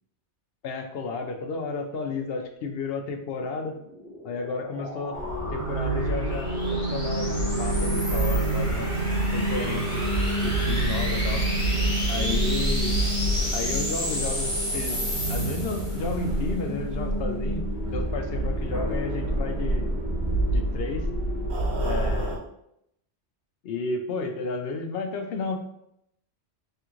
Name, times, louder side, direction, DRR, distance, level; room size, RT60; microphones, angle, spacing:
voice 1, 0.6-3.8 4.2-5.2 5.5-8.9 9.3-10.0 10.4-11.5 12.1-12.9 13.5-14.5 14.7-14.9 15.3-19.9 20.5-21.1 21.8-22.4 23.6-25.6, left 4 dB, 65° left, 5 dB, 0.7 m, -32 dB
sound 1, 3.7-16.2, equal, 25° left, 1.2 m, -33 dB
sound 2, 5.1-22.4, right 1 dB, 65° right, 1.2 m, -27 dB
3.6 x 3.4 x 3.0 m, 0.77 s
omnidirectional pair, 1.2 m